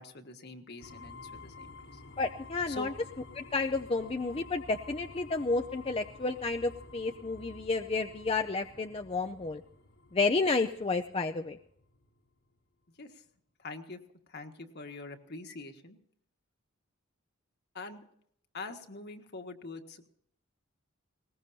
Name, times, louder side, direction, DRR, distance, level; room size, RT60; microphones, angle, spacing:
voice 1, 0.0-2.0 2.7-2.9 13.0-13.2 13.6-14.0 14.3-16.0 17.7-18.0 18.5-20.1, left 3 dB, 55° left, 5 dB, 1.7 m, -44 dB
sound 1, 0.8-12.6, left 3 dB, 85° left, 2.8 m, -51 dB
voice 2, 2.2-2.9 3.4-9.6 10.1-11.6, left 3 dB, 30° left, 6 dB, 0.5 m, -31 dB
20.5 x 19.5 x 2.8 m, 0.69 s
head